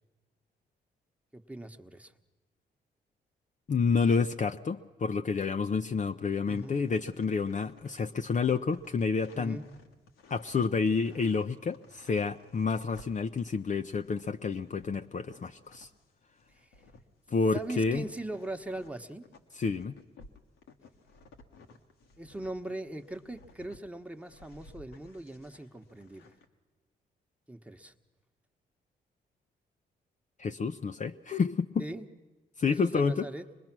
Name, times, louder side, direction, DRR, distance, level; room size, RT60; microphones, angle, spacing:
voice 1, 1.3-2.1 6.4-6.8 9.3-9.7 16.5-16.7 17.5-19.3 22.2-26.3 27.5-27.9 31.8-32.1 32.7-33.5, right 1 dB, 5° right, 6 dB, 1.2 m, -40 dB
voice 2, 3.7-9.6 10.3-15.9 17.3-18.0 19.5-19.9 30.4-31.8 32.6-33.3, left 5 dB, 40° left, 7 dB, 0.6 m, -29 dB
sound 1, 6.5-16.0 16.4-23.8 24.2-26.5, left 3 dB, 80° left, 1.4 m, -57 dB
24.0 x 20.5 x 6.1 m, 1.2 s
supercardioid pair, 50°, 20 cm